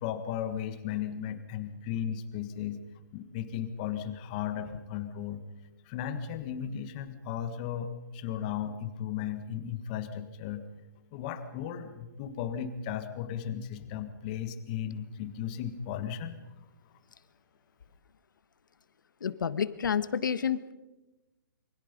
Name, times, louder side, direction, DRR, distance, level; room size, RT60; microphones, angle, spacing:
voice 1, 0.0-2.8 3.1-5.4 5.8-10.6 11.1-16.4, left 9 dB, 20° left, 9 dB, 1.6 m, -35 dB
voice 2, 19.2-20.7, left 7 dB, 65° left, 14 dB, 1.5 m, -29 dB
28.0 x 25.0 x 5.3 m, 1.0 s
hypercardioid pair, 170°, 11 cm